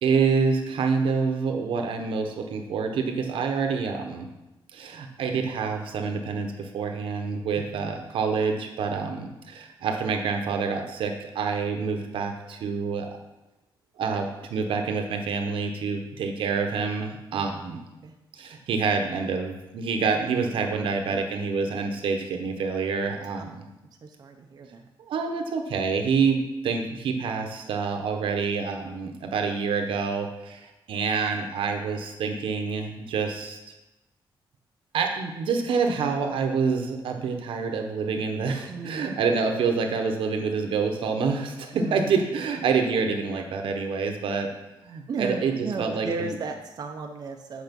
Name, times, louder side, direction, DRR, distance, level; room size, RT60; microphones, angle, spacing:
voice 1, 0.0-4.3 4.7-13.2 14.0-17.8 18.4-23.6 25.0-33.6 34.9-44.5 44.8-45.5 45.8-46.4, right 5 dB, 80° right, 4 dB, 1.1 m, -27 dB
voice 2, 24.0-24.9 38.7-39.2 41.7-42.2 45.1-47.6, right 4 dB, 50° right, 3 dB, 0.7 m, -35 dB
8.3 x 5.0 x 5.3 m, 1.0 s
cardioid pair, 130°, 9 cm